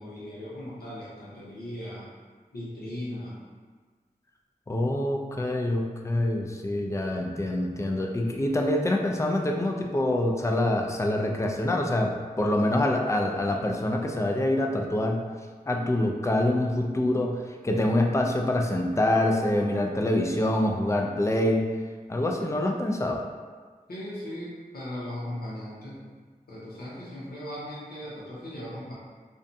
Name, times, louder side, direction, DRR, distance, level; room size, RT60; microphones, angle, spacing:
voice 1, 0.0-2.1 2.5-3.4 23.9-26.0 26.5-28.9, left 1 dB, 80° left, -7 dB, 0.8 m, -38 dB
voice 2, 4.7-15.2 15.7-17.4 17.6-21.6 22.1-23.2, left 1 dB, 20° left, 1 dB, 0.3 m, -25 dB
2.6 x 2.2 x 2.5 m, 1.5 s
wide cardioid pair, 45°, 16 cm